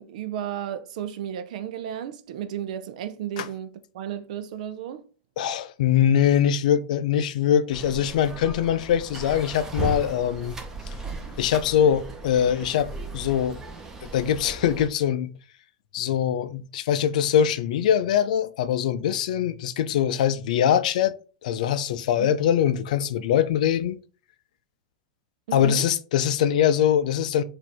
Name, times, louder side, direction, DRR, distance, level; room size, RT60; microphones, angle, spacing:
voice 1, 0.0-5.0 22.2-22.3 25.5-25.9, right 10 dB, 70° right, 0.5 m, -33 dB
voice 2, 5.4-10.6 11.4-13.6 14.1-15.3 15.9-21.1 21.4-24.0 25.5-27.4, left 9 dB, 75° left, 0.5 m, -22 dB
sound 1, 7.7-14.9, right 2 dB, 15° right, 1.0 m, -36 dB
4.9 x 2.6 x 3.4 m
hypercardioid pair, 120°, 4 cm